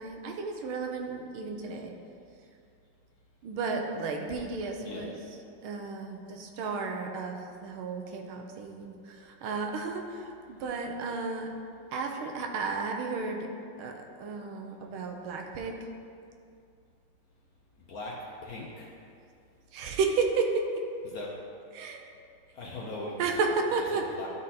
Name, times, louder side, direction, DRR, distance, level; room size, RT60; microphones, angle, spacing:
voice 1, 0.0-1.9 3.4-5.1 5.6-7.4 7.6-11.5 11.9-13.5 13.8-15.8 19.7-20.6 21.7-22.0 23.2-24.1, right 4 dB, 85° right, 3 dB, 1.6 m, -32 dB
voice 2, 4.8-5.2 17.9-18.9 21.0-21.3 22.5-23.3 23.9-24.3, left 2 dB, 60° left, -2 dB, 1.0 m, -40 dB
12.0 x 4.0 x 4.1 m, 2.4 s
omnidirectional pair, 2.3 m